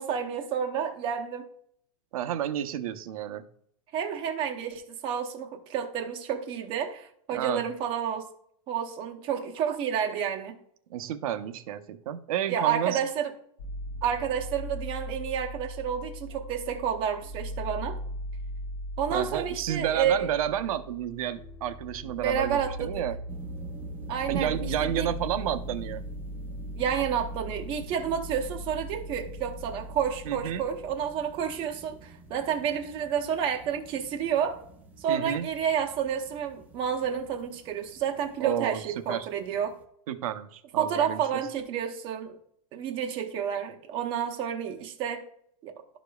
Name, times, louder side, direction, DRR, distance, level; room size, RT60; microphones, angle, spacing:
voice 1, 0.0-1.5 3.9-8.2 8.7-10.6 12.5-13.3 14.0-18.0 19.0-20.3 22.2-23.0 24.1-25.1 26.8-34.6 35.0-39.7 40.8-42.4 42.7-45.2 45.6-45.7, right 8 dB, 25° right, 0.8 m, -30 dB
voice 2, 2.1-3.4 7.3-7.6 10.9-13.0 19.1-23.2 24.3-26.0 30.2-30.6 35.1-35.5 38.4-38.8 39.1-39.3 40.1-41.2, right 10 dB, 65° right, 0.8 m, -31 dB
sound 1, 13.6-31.6, equal, 55° left, 0.9 m, -39 dB
sound 2, 23.3-39.8, right 2 dB, 10° right, 0.5 m, -48 dB
12.5 x 5.0 x 2.3 m
supercardioid pair, 165°, 19 cm